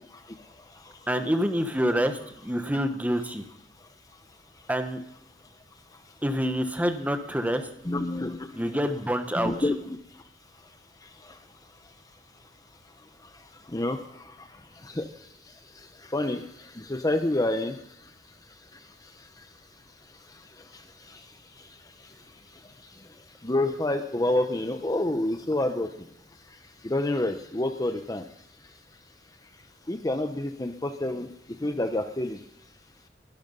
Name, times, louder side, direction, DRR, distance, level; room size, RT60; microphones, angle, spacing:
voice 1, 1.1-3.4 4.7-5.0 6.2-7.6 8.5-9.5, equal, 10° right, 7 dB, 1.2 m, -27 dB
voice 2, 7.8-8.7 9.3-10.0 13.7-14.2 14.8-15.1 16.1-16.4 16.8-17.8 21.1-21.2 23.4-25.9 26.8-28.2 29.9-31.3 31.6-32.4, left 1 dB, 20° left, 7 dB, 0.8 m, -28 dB
21.5 x 12.0 x 5.4 m, 0.77 s
head